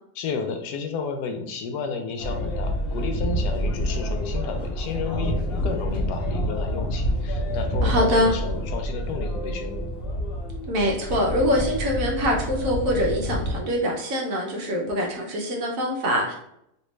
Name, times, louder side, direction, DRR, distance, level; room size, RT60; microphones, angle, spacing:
voice 1, 0.1-9.9, left 5 dB, 85° left, 6 dB, 1.1 m, -32 dB
sound 1, 2.2-13.6, equal, 50° left, 0.7 m, -28 dB
voice 2, 7.8-8.3 10.7-16.3, equal, 65° right, 0 dB, 1.0 m, -24 dB
3.3 x 2.6 x 3.1 m, 0.80 s
omnidirectional pair, 1.7 m